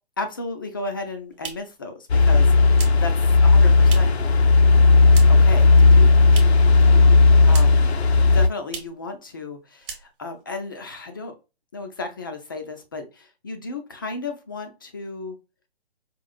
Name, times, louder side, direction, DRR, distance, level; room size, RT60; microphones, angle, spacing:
voice 1, 0.2-3.1 3.4-4.2 5.3-6.4 7.5-7.9 8.3-11.3 11.7-15.4, left 3 dB, 20° left, 5 dB, 0.4 m, -34 dB
sound 1, 0.8-4.3 4.6-5.6 5.8-6.7 7.0-7.9 8.2-8.3 8.6-9.0 9.4-9.5 9.8-10.4, right 6 dB, 25° right, 0.9 m, -39 dB
sound 2, 2.1-8.5, left 3 dB, 80° left, 0.6 m, -14 dB
5.0 x 2.5 x 2.4 m, 0.29 s
figure-of-eight pair, 140°, 32 cm